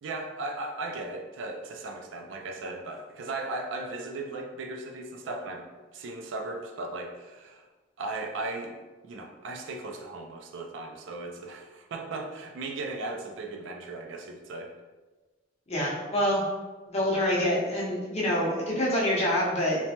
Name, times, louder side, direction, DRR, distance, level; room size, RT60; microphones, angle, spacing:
voice 1, 0.0-7.6 8.0-8.8 9.0-14.7, right 2 dB, 70° right, 3 dB, 0.4 m, -37 dB
voice 2, 15.7-16.4 16.9-19.9, equal, 35° left, -5 dB, 0.8 m, -26 dB
3.0 x 2.1 x 2.8 m, 1.2 s
head